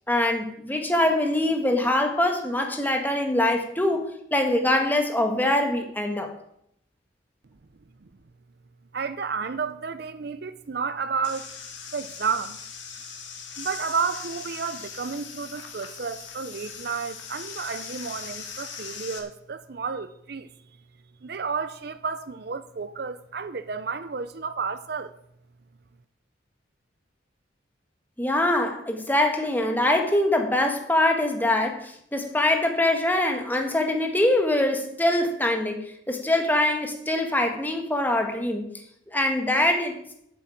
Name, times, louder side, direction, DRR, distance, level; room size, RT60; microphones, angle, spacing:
voice 1, 0.1-6.3 28.2-35.8 36.1-38.7 39.1-40.0, left 1 dB, 10° left, 1.4 m, -23 dB
voice 2, 8.9-11.5 11.9-12.6 13.6-20.5 21.2-25.1, right 5 dB, 55° right, 0.6 m, -31 dB
sound 1, 11.2-19.2, left 6 dB, 70° left, 1.9 m, -40 dB
8.4 x 7.8 x 8.6 m
head